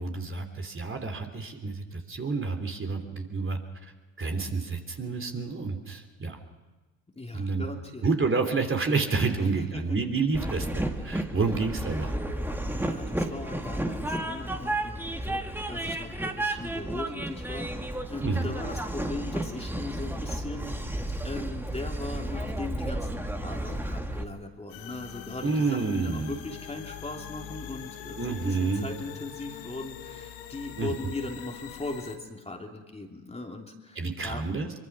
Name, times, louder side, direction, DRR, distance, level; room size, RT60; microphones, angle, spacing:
voice 1, 0.0-3.6 4.2-6.4 7.3-7.6 8.0-12.2 18.2-18.5 25.4-26.4 28.2-28.9 30.8-30.9 34.0-34.7, right 4 dB, 25° right, 4 dB, 3.2 m, -29 dB
voice 2, 7.1-8.1 9.4-10.0 12.7-20.8 21.2-34.5, left 2 dB, 15° left, 2 dB, 3.0 m, -39 dB
Train, 10.3-24.2, right 1 dB, 5° right, 2.1 m, -32 dB
sound 1, 24.7-32.2, left 10 dB, 65° left, 1.9 m, -43 dB
24.0 x 23.0 x 6.1 m, 1.2 s
hypercardioid pair, 70°, 48 cm